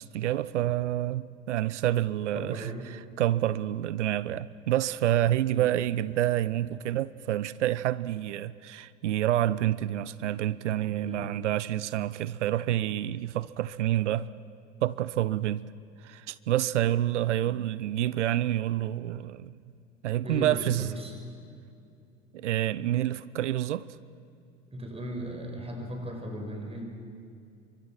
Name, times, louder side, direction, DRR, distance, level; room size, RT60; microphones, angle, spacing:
voice 1, 0.0-2.7 3.2-14.3 14.8-15.6 16.0-19.5 20.0-20.9 22.3-23.9, right 13 dB, 70° right, 0.7 m, -28 dB
voice 2, 2.4-2.9 5.5-5.7 11.0-11.3 20.2-21.1 24.7-26.8, equal, 15° right, 5.2 m, -37 dB
26.5 x 23.5 x 5.9 m
figure-of-eight pair, 70°, 37 cm